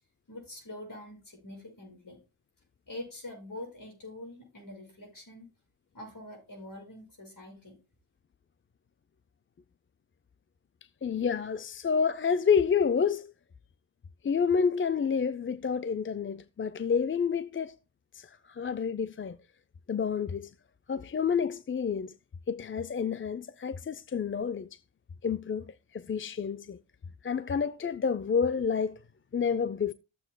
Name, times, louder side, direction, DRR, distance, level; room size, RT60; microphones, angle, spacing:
voice 1, 0.3-2.2 2.9-5.5 5.9-7.8, left 1 dB, 50° left, 6.4 m, -44 dB
voice 2, 11.0-13.3 14.2-17.8 18.1-19.4 19.9-20.5 20.9-22.1 22.5-24.8 25.2-26.8 27.2-29.0 29.3-29.9, left 6 dB, 30° left, 0.4 m, -29 dB
14.5 x 7.7 x 2.2 m
cardioid pair, 55°, 41 cm